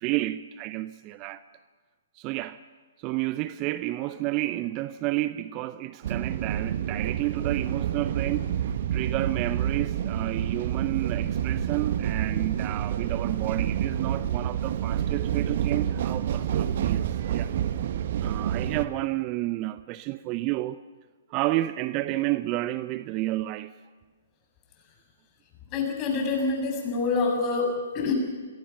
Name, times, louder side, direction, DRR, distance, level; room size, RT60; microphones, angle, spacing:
voice 1, 0.0-1.4 2.2-2.6 3.0-17.5 18.2-20.8 21.3-23.7, right 17 dB, 30° right, 0.6 m, -31 dB
sound 1, 6.0-18.9, right 10 dB, 50° right, 1.4 m, -28 dB
voice 2, 25.7-28.1, left 4 dB, 30° left, 7.3 m, -26 dB
29.5 x 22.5 x 5.9 m
figure-of-eight pair, 120°, 0 cm